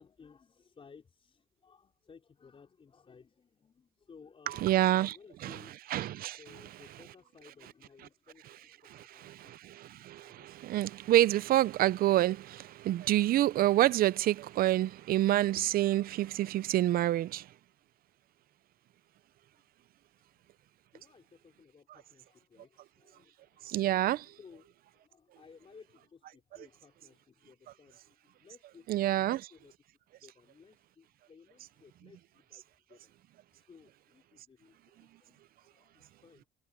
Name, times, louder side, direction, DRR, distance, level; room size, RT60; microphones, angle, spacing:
voice 1, 0.0-6.0 6.2-10.5 20.9-29.7 30.2-33.1 33.5-36.5, left 5 dB, 35° left, 5.0 m, -59 dB
voice 2, 4.5-5.2 5.4-7.1 8.5-8.6 8.9-17.4 23.7-24.3 28.9-29.5, right 14 dB, 60° right, 0.6 m, -28 dB
cardioid pair, 110°, 17 cm